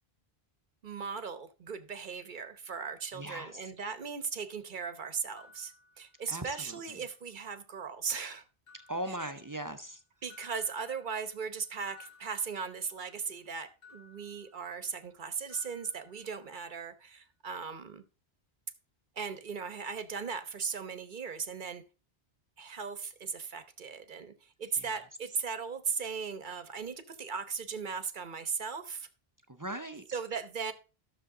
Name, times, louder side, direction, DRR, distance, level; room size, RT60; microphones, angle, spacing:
voice 1, 0.8-8.4 9.1-9.3 10.2-18.0 19.2-21.8 22.6-29.1 30.1-30.7, right 6 dB, 50° right, 1.0 m, -38 dB
voice 2, 3.1-3.7 6.3-6.8 8.9-10.0 24.8-25.0 29.5-30.2, right 1 dB, 20° right, 0.6 m, -39 dB
sound 1, 5.4-6.6 7.0-7.8 8.7-9.9 10.3-13.2 13.8-15.2 15.5-16.8, left 4 dB, 60° left, 3.4 m, -60 dB
12.5 x 6.7 x 3.8 m
omnidirectional pair, 1.1 m